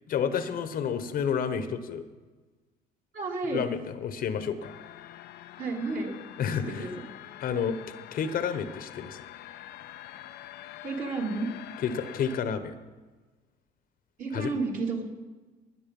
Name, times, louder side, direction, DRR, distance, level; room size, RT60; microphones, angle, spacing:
voice 1, 0.1-2.0 3.5-4.8 6.4-6.9 7.4-7.8 8.1-9.2 11.8-12.7 14.3-14.5, left 7 dB, 60° left, 11 dB, 1.0 m, -30 dB
voice 2, 3.1-3.6 5.6-6.1 6.5-6.9 10.8-11.5 14.2-15.1, right 3 dB, 50° right, 0 dB, 2.8 m, -31 dB
sound 1, 4.6-12.4, left 13 dB, 75° left, 0.5 m, -46 dB
19.5 x 6.4 x 5.4 m, 1.3 s
cardioid pair, 110°, 17 cm